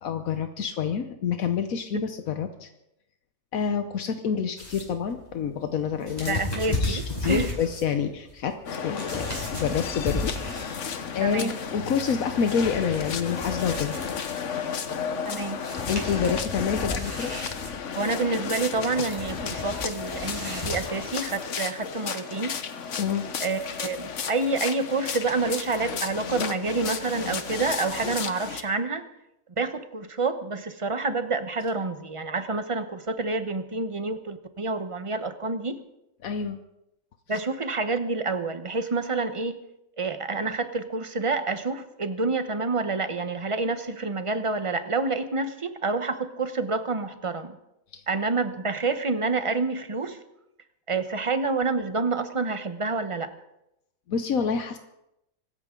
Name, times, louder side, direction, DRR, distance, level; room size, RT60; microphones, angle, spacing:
voice 1, 0.0-2.7 3.5-6.4 6.7-8.6 8.8-10.9 11.1-13.9 15.9-17.4 23.0-23.3 36.2-36.6 47.9-48.0 54.1-54.8, left 7 dB, 80° left, 7 dB, 1.3 m, -28 dB
sound 1, 4.6-11.0 11.3-14.6 15.3-15.4 15.6-21.3, left 1 dB, 30° left, 5.9 m, -34 dB
voice 2, 6.3-7.6 11.2-11.6 15.2-15.6 18.0-22.6 23.4-29.1 29.6-35.8 37.3-39.6 40.0-47.6 48.1-50.2 50.9-53.3, right 3 dB, 25° right, 10 dB, 0.9 m, -28 dB
sound 2, 8.7-28.6, left 6 dB, 60° left, 1.3 m, -33 dB
24.5 x 14.0 x 3.8 m, 0.86 s
omnidirectional pair, 1.4 m